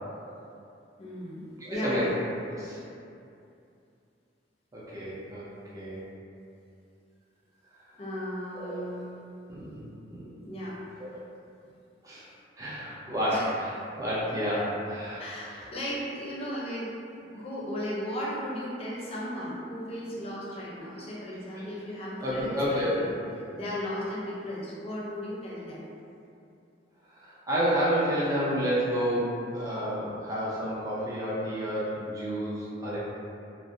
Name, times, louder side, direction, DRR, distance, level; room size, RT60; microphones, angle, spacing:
voice 1, 1.0-1.4 1.7-2.1 8.0-9.0 10.4-10.8 13.3-13.5 15.2-23.2 23.5-25.8, equal, 35° left, -6 dB, 0.5 m, -36 dB
voice 2, 1.6-2.1 2.5-2.8 4.7-5.5 5.7-6.0 8.5-8.8 9.5-9.8 10.1-10.3 11.0-11.1 12.0-12.2 12.6-13.7 14.0-15.2 22.2-23.1 27.2-33.0, equal, 20° right, -9 dB, 0.5 m, -30 dB
2.4 x 2.0 x 2.6 m, 2.6 s
head